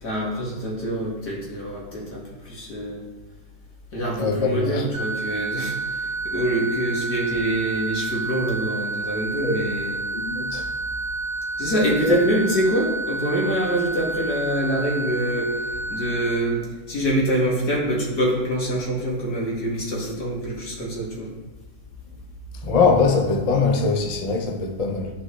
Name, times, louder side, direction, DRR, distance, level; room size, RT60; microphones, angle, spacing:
voice 1, 0.0-3.0 3.9-10.0 11.6-21.3, right 1 dB, 60° left, 2.4 m, -25 dB
voice 2, 4.2-4.8 9.4-9.6 10.1-10.7 12.0-12.2 22.6-25.1, left 4 dB, 80° left, 0.3 m, -22 dB
sound 1, 4.9-16.4, right 3 dB, 20° right, 1.9 m, -29 dB
12.5 x 4.3 x 3.2 m
omnidirectional pair, 1.9 m